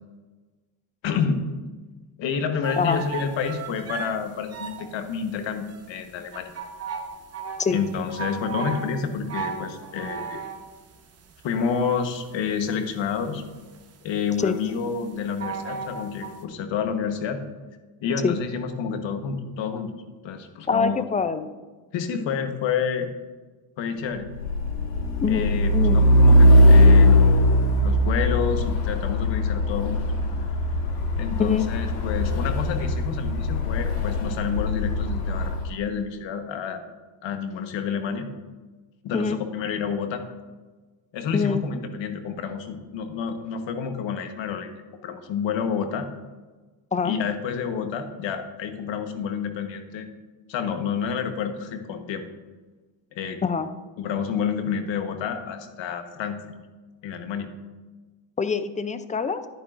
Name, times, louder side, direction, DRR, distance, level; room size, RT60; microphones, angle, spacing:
voice 1, 1.0-1.4 2.2-6.5 7.7-10.4 11.4-13.4 14.0-17.4 18.0-19.9 20.2-21.1 21.9-23.1 23.8-24.3 25.3-30.0 31.2-36.8 37.2-38.3 39.0-40.2 41.1-44.7 45.0-46.1 47.0-50.1 50.5-52.2 53.1-53.4 54.0-56.4 57.0-57.5, left 6 dB, 65° left, 7 dB, 1.2 m, -29 dB
sound 1, 2.6-16.4, right 5 dB, 30° right, 1.0 m, -36 dB
voice 2, 20.7-21.5 25.2-26.0 31.4-31.7 39.1-39.4 41.3-41.7 46.9-47.2 53.4-53.7 58.4-59.5, left 5 dB, 15° left, 11 dB, 0.4 m, -24 dB
Truck, 24.3-35.7, left 1 dB, 90° left, 1.4 m, -19 dB
10.5 x 10.0 x 2.5 m, 1.3 s
supercardioid pair, 95°, 49 cm